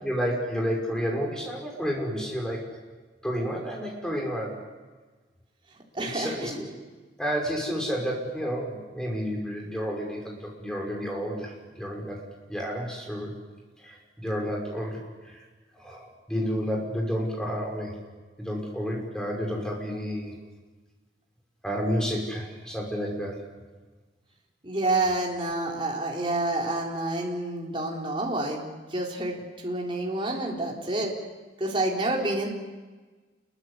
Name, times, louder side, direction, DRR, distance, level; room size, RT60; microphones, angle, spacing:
voice 1, 0.0-2.7 3.2-4.6 6.0-6.7 7.2-12.2 12.5-13.3 13.8-15.0 15.8-17.9 18.4-20.3 21.6-23.4, equal, 5° left, -1 dB, 6.0 m, -30 dB
voice 2, 5.9-6.6 24.6-31.1 31.6-32.5, right 2 dB, 30° right, -2 dB, 4.0 m, -28 dB
28.0 x 23.0 x 8.4 m, 1.3 s
head